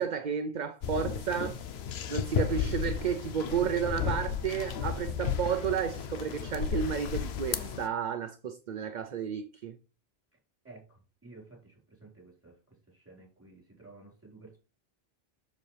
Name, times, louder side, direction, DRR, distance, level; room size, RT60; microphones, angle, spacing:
voice 1, 0.0-1.6 2.1-9.8, right 7 dB, 50° right, 0.7 m, -32 dB
sound 1, 0.8-7.9, left 8 dB, 75° left, 0.9 m, -33 dB
voice 2, 10.6-12.6 12.9-14.6, right 3 dB, 10° right, 4.5 m, -53 dB
7.2 x 6.9 x 3.3 m
omnidirectional pair, 1.1 m